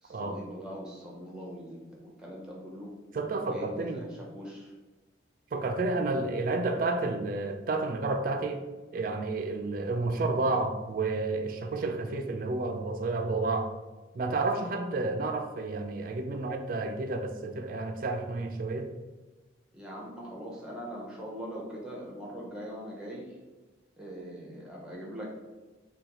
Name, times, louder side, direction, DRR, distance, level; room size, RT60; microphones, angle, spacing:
voice 1, 0.0-2.9 3.4-4.7 19.7-23.4 24.0-25.4, equal, 5° right, -4 dB, 0.6 m, -41 dB
voice 2, 3.1-4.1 5.5-8.6 8.9-13.7 14.1-18.9, right 3 dB, 45° right, 6 dB, 0.3 m, -30 dB
3.9 x 2.2 x 2.9 m, 1.2 s
head